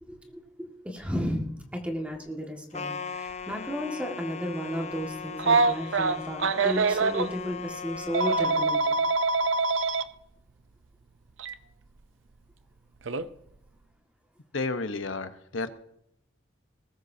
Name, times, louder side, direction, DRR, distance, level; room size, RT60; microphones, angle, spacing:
voice 1, 0.0-9.1, equal, 5° right, 1 dB, 1.9 m, -34 dB
sound 1, 2.7-8.7, left 5 dB, 35° left, 0.6 m, -39 dB
Telephone, 5.4-7.3 8.1-10.0 11.4-11.5 13.1-13.3, right 3 dB, 75° right, 0.7 m, -24 dB
voice 2, 14.5-15.7, left 3 dB, 85° left, 9 dB, 1.1 m, -31 dB
20.5 x 13.5 x 2.8 m, 0.78 s
head